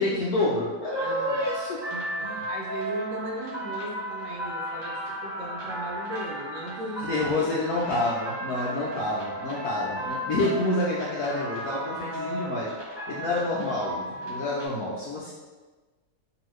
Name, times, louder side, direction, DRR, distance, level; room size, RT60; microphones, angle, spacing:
voice 1, 0.0-1.8 7.0-12.7 13.1-15.3, left 2 dB, 70° left, -5 dB, 0.9 m, -28 dB
sound 1, 0.9-14.7, right 1 dB, 30° right, 0.5 m, -35 dB
voice 2, 1.0-1.5 1.9-7.7, right 1 dB, 80° right, -1 dB, 1.3 m, -37 dB
2.9 x 2.7 x 3.0 m, 1.2 s
omnidirectional pair, 1.9 m